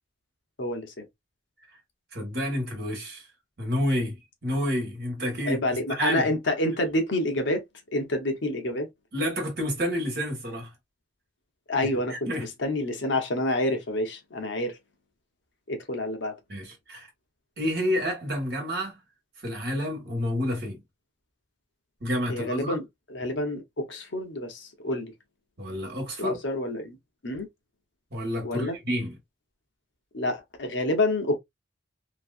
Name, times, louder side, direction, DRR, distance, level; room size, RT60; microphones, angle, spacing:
voice 1, 0.6-1.1 5.5-7.6 7.9-8.9 11.7-14.8 15.7-16.3 22.3-22.8 23.1-25.1 26.2-27.0 27.2-27.5 28.4-28.8 30.1-31.4, left 1 dB, 70° left, 0.9 m, -28 dB
voice 2, 2.1-3.3 3.6-4.2 4.4-5.6 6.0-6.3 9.1-10.7 11.8-12.5 16.5-17.1 17.6-19.0 19.4-20.8 22.0-22.8 25.6-26.4 28.1-29.1, equal, 55° right, 1.6 m, -29 dB
3.0 x 2.8 x 2.4 m
head